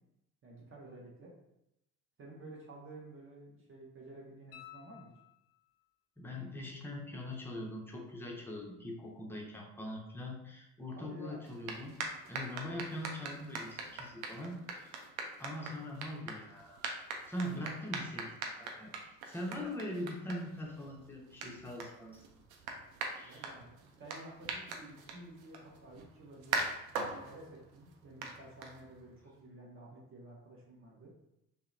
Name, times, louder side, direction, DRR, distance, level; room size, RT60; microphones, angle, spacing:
voice 1, 0.4-1.3 2.2-5.1 11.0-11.4 23.2-31.1, right 1 dB, 30° right, -2 dB, 0.7 m, -52 dB
sound 1, 4.5-5.8 8.6-8.7, left 13 dB, 50° left, 0.5 m, -55 dB
voice 2, 6.2-12.0 12.3-14.9 15.4-16.9 17.3-18.9 19.3-22.2 23.1-23.5, left 1 dB, 5° left, -1 dB, 0.4 m, -42 dB
sound 2, 11.4-29.2, right 4 dB, 70° right, 0.6 m, -43 dB
2.8 x 2.0 x 2.5 m, 0.85 s
figure-of-eight pair, 55°, 45 cm